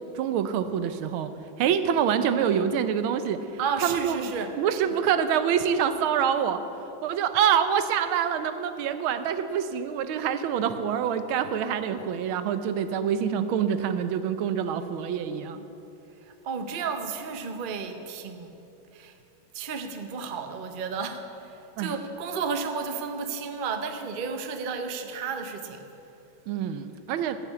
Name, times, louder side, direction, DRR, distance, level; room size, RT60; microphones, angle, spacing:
voice 1, 0.1-1.3 1.6-3.4 3.8-6.6 7.0-15.6 21.8-21.9 26.5-27.4, right 8 dB, 90° right, 10 dB, 1.6 m, -26 dB
voice 2, 3.6-4.5 4.8-5.0 16.4-18.5 18.9-19.1 19.5-21.2 21.8-25.8, right 5 dB, 70° right, 7 dB, 0.5 m, -32 dB
14.5 x 6.0 x 8.1 m, 2.9 s
omnidirectional pair, 2.2 m